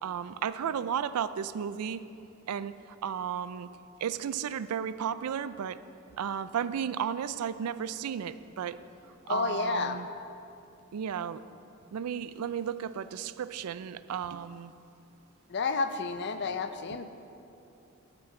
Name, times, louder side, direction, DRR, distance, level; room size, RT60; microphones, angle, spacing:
voice 1, 0.0-2.1 2.5-2.7 3.0-3.7 4.0-5.8 6.2-8.8 9.3-10.1 10.9-11.4 11.9-14.7 16.9-17.0, right 8 dB, 90° right, 14 dB, 0.4 m, -33 dB
voice 2, 9.3-10.0 15.5-17.1, left 4 dB, 50° left, 9 dB, 0.5 m, -30 dB
9.6 x 6.2 x 7.1 m, 2.8 s
head